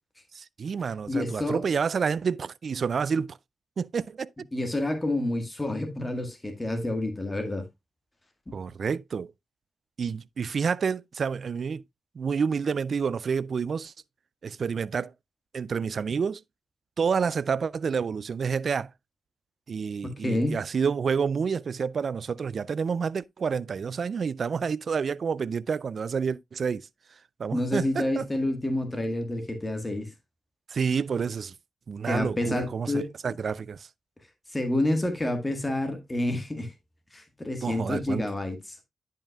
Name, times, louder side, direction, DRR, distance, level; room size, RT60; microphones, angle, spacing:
voice 1, 0.3-3.4 3.8-4.5 8.5-9.3 10.0-11.8 12.2-13.9 14.4-15.1 15.5-16.4 17.0-18.9 19.7-26.9 27.4-28.3 30.7-31.5 31.9-33.9 37.6-38.3, right 6 dB, 55° right, 0.3 m, -29 dB
voice 2, 1.1-1.7 4.5-7.6 20.0-20.6 27.5-30.1 32.1-33.4 34.5-36.7 37.1-38.8, left 1 dB, 20° left, 1.7 m, -29 dB
10.5 x 5.6 x 2.3 m
supercardioid pair, 45°, 0 cm